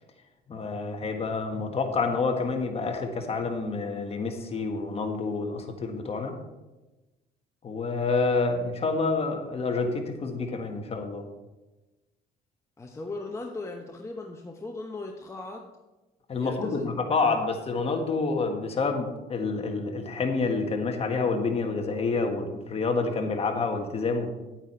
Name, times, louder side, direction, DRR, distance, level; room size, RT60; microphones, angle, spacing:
voice 1, 0.5-6.4 7.6-11.3 16.3-24.3, left 4 dB, 35° left, 4 dB, 1.6 m, -28 dB
voice 2, 12.8-15.7 16.4-16.9, left 2 dB, 15° left, 2 dB, 1.0 m, -38 dB
9.8 x 9.0 x 4.4 m, 1.1 s
cardioid pair, 110°, 17 cm